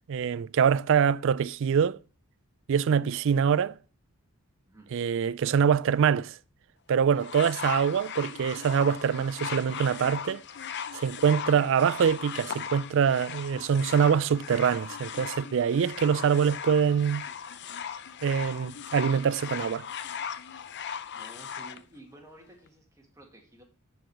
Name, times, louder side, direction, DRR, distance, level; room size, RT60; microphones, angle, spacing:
voice 1, 0.1-2.0 2.7-3.7 4.9-6.3 6.9-10.4 10.9-17.2 18.2-19.9, right 7 dB, 60° right, 0.4 m, -24 dB
sound 1, 7.2-21.8 22.7-22.8, left 8 dB, 55° left, 0.6 m, -38 dB
voice 2, 21.1-23.6, right 1 dB, 15° right, 2.0 m, -52 dB
10.5 x 4.7 x 4.8 m
head